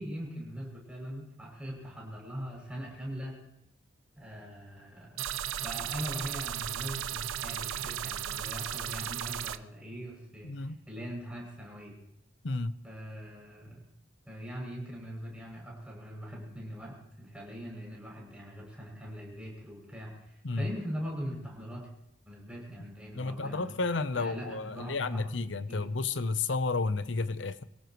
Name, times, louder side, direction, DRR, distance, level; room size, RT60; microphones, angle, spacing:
voice 1, 0.0-3.4 4.2-5.2 5.6-11.9 12.8-13.8 14.3-21.9 22.3-23.8 24.1-25.8, equal, 5° right, 7.1 m, -41 dB
sound 1, 5.2-9.6, right 10 dB, 85° right, 0.6 m, -35 dB
voice 2, 10.4-10.8 12.4-12.7 20.4-20.7 23.1-27.6, left 3 dB, 65° left, 0.8 m, -32 dB
25.5 x 17.5 x 3.1 m
head